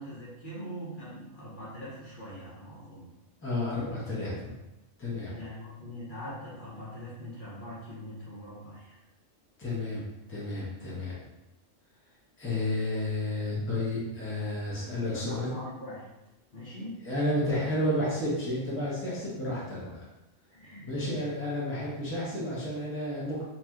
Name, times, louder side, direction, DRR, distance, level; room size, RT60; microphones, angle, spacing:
voice 1, 0.0-3.1 5.3-9.0 14.9-16.1 16.5-17.0 19.1-19.2 20.5-21.3, equal, 45° left, -8 dB, 1.2 m, -42 dB
voice 2, 3.4-4.5 5.0-5.3 9.6-10.0 10.3-11.1 12.4-15.5 17.1-20.0 20.8-23.4, left 1 dB, 10° left, -8 dB, 0.9 m, -31 dB
2.9 x 2.9 x 3.6 m, 0.96 s
omnidirectional pair, 1.3 m